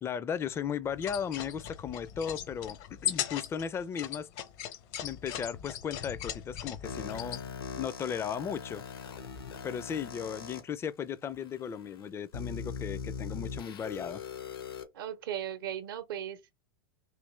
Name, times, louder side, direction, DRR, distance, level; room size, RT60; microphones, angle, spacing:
voice 1, 0.0-4.3 5.0-7.4 7.8-8.8 9.6-14.2, left 7 dB, 20° left, 0.4 m, -36 dB
sound 1, 0.9-7.4, left 10 dB, 55° left, 0.7 m, -38 dB
sound 2, 6.8-10.6 11.3-11.4 12.3-14.8, left 6 dB, 80° left, 1.0 m, -40 dB
voice 2, 14.9-16.5, right 10 dB, 70° right, 0.7 m, -37 dB
3.2 x 2.9 x 3.1 m
hypercardioid pair, 100°, 12 cm